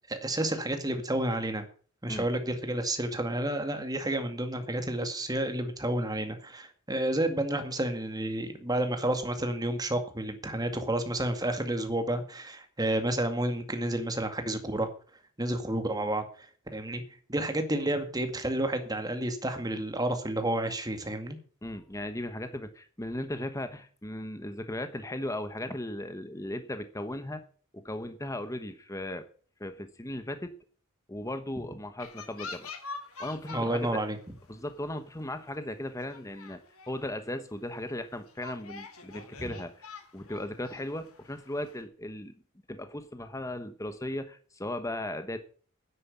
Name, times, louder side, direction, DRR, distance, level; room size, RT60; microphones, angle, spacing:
voice 1, 0.1-1.7 2.0-14.9 15.4-16.5 16.7-17.0 17.3-21.4 33.5-34.2 39.4-39.5, right 1 dB, 15° right, 7 dB, 2.1 m, -30 dB
voice 2, 21.6-27.4 27.7-29.3 29.6-30.5 31.1-32.7 33.2-34.0 34.5-36.6 36.9-42.3 42.7-45.4, left 1 dB, 15° left, 9 dB, 1.1 m, -37 dB
sound 1, 32.0-33.9 34.2-34.5 35.2-35.3 35.7-35.8 36.1-37.1 37.5-37.6 38.3-41.8, left 4 dB, 70° left, 2.7 m, -45 dB
10.0 x 9.5 x 8.5 m, 0.43 s
head